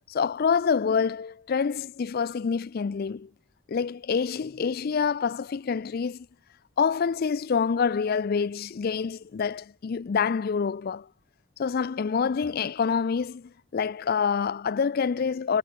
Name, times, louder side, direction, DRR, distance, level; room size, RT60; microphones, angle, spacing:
voice 1, 0.1-3.3 3.7-6.3 6.8-11.1 11.6-15.6, left 6 dB, 50° left, 0.4 m, -27 dB
head